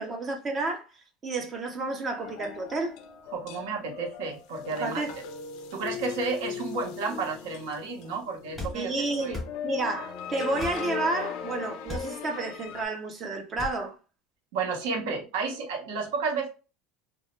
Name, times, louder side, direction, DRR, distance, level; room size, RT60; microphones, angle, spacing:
voice 1, 0.0-3.0 4.8-5.2 8.7-14.0, right 2 dB, 20° right, 0.4 m, -31 dB
sound 1, 2.2-12.9, left 7 dB, 55° left, 0.4 m, -39 dB
voice 2, 3.3-5.0 5.7-8.9 9.2-9.3 14.5-16.5, right 4 dB, 75° right, 0.8 m, -31 dB
sound 2, 8.5-8.8 9.3-9.5 10.6-10.8 11.9-12.1 13.6-13.8, left 2 dB, ahead, 0.9 m, -36 dB
2.2 x 2.0 x 2.9 m
cardioid pair, 170°, 0 cm